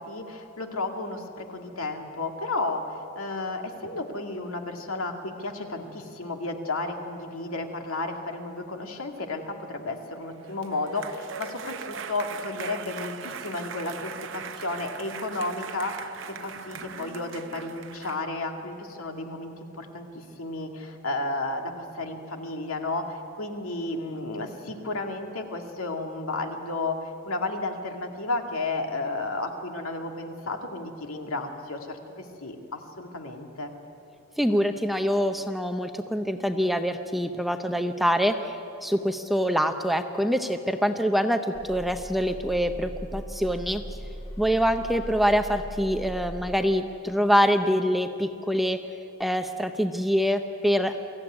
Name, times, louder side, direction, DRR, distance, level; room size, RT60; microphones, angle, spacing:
voice 1, 0.0-33.7, left 2 dB, 80° left, 3 dB, 2.1 m, -33 dB
sound 1, 10.3-18.2, right 6 dB, 60° right, 0.9 m, -40 dB
voice 2, 34.4-43.8 44.4-48.8 49.2-51.0, equal, ahead, 7 dB, 0.7 m, -25 dB
sound 2, 41.5-46.8, equal, 30° left, 4.2 m, -39 dB
23.5 x 15.0 x 9.7 m, 2.8 s
head